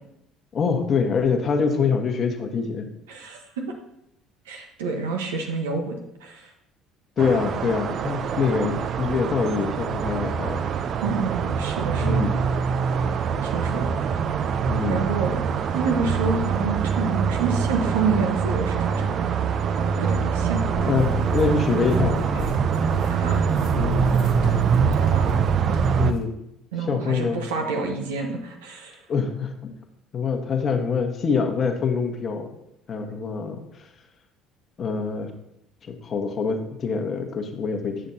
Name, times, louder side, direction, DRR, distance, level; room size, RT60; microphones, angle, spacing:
voice 1, 0.5-2.9 7.2-10.6 12.0-12.4 14.7-15.0 20.8-22.2 23.7-24.1 26.0-26.3 26.9-27.4 29.1-29.8 30.1-32.5 32.9-33.9 34.8-35.3 35.8-38.0, left 5 dB, 45° left, 5 dB, 1.1 m, -25 dB
voice 2, 3.1-3.6 4.5-6.5 11.0-12.3 13.4-14.0 14.8-15.4 15.7-19.2 20.0-20.9 23.1-23.4 24.9-25.3 26.7-29.0, right 4 dB, 80° right, 3 dB, 1.0 m, -28 dB
sound 1, 7.2-26.1, right 6 dB, 50° right, 0.5 m, -24 dB
sound 2, 20.7-26.2, left 4 dB, 65° left, 1.7 m, -35 dB
8.7 x 6.5 x 2.7 m, 0.82 s
hypercardioid pair, 65°, 0 cm